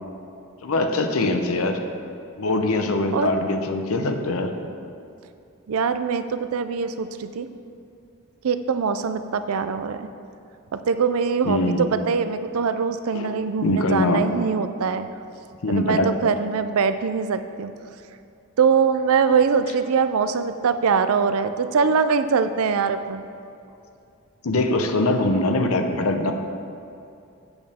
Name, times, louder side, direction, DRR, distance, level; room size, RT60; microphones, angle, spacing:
voice 1, 0.6-1.8 2.4-4.5 11.4-11.9 13.1-13.3 13.6-14.2 15.6-16.1 24.4-26.3, left 2 dB, 75° left, 5 dB, 0.7 m, -22 dB
voice 2, 5.7-7.5 8.4-10.1 10.7-15.1 15.7-17.7 18.6-23.2, right 6 dB, 80° right, 10 dB, 0.4 m, -23 dB
8.5 x 7.9 x 3.5 m, 2.6 s
head